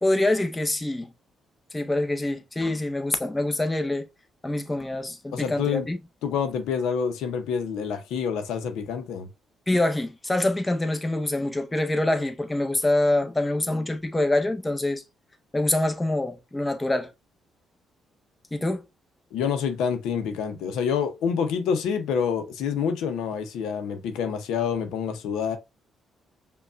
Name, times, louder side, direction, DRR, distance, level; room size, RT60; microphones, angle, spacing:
voice 1, 0.0-1.1 1.7-4.1 4.4-6.0 9.7-15.0 15.5-17.1 18.5-18.8, left 1 dB, 15° left, 0.7 m, -25 dB
voice 2, 5.3-5.9 6.2-9.3 19.3-25.6, left 7 dB, 90° left, 0.7 m, -27 dB
5.2 x 2.3 x 2.4 m
cardioid pair, 90°, 0 cm